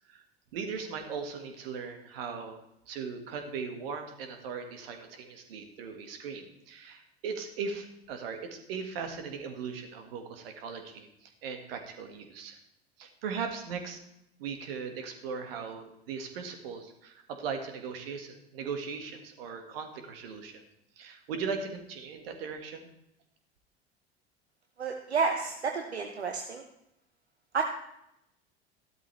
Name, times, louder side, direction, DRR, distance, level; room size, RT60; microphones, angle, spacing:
voice 1, 0.5-2.6 2.9-12.6 13.0-14.0 14.4-20.6 21.0-22.9, right 5 dB, 65° right, 6 dB, 1.9 m, -38 dB
voice 2, 24.8-26.6 27.5-27.6, right 5 dB, 85° right, 4 dB, 0.9 m, -30 dB
14.0 x 12.0 x 3.4 m, 0.81 s
figure-of-eight pair, 70°, 32 cm